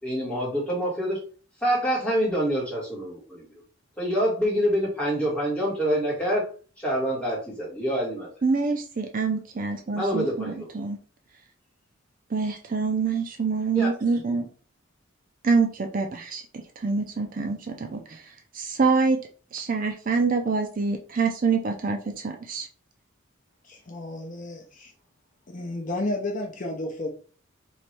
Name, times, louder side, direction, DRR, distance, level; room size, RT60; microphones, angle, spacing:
voice 1, 0.0-1.2 1.6-3.5 4.0-6.4 6.8-8.3 9.9-10.7 13.7-13.9, equal, 5° left, -6 dB, 1.8 m, -26 dB
voice 2, 8.4-11.0 12.3-14.5 15.4-19.2 19.5-22.7, right 4 dB, 40° right, 4 dB, 0.5 m, -26 dB
voice 3, 23.6-24.9 25.5-27.1, left 2 dB, 40° left, 0 dB, 0.7 m, -32 dB
3.2 x 3.0 x 4.3 m, 0.40 s
head